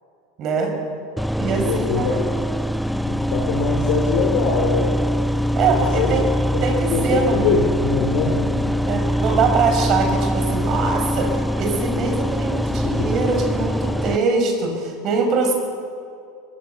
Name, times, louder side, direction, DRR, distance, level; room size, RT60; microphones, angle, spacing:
voice 1, 0.4-0.7 1.4-2.2 5.5-6.2 6.6-7.4 8.9-15.5, right 4 dB, 45° right, 3 dB, 5.9 m, -22 dB
sound 1, 1.2-14.2, equal, ahead, 0.5 m, -23 dB
voice 2, 1.6-2.1 3.1-5.0 5.6-6.1 6.9-8.7 12.8-13.1, left 5 dB, 65° left, -1 dB, 3.9 m, -23 dB
20.5 x 15.5 x 8.1 m, 2.4 s
hypercardioid pair, 100°, 0 cm